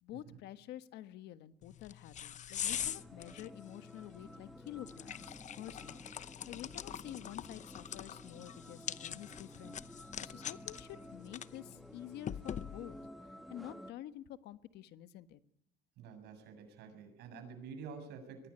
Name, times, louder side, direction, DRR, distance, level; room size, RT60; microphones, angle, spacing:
voice 1, 0.0-13.0 13.2-15.4, left 12 dB, 80° left, 12 dB, 1.4 m, -49 dB
sound 1, 1.6-13.1, left 9 dB, 45° left, 0.9 m, -44 dB
sound 2, 2.7-13.9, equal, ahead, 1.4 m, -53 dB
voice 2, 16.0-18.5, right 5 dB, 80° right, 7 dB, 7.1 m, -49 dB
23.0 x 18.5 x 9.9 m, 0.79 s
cardioid pair, 110°, 17 cm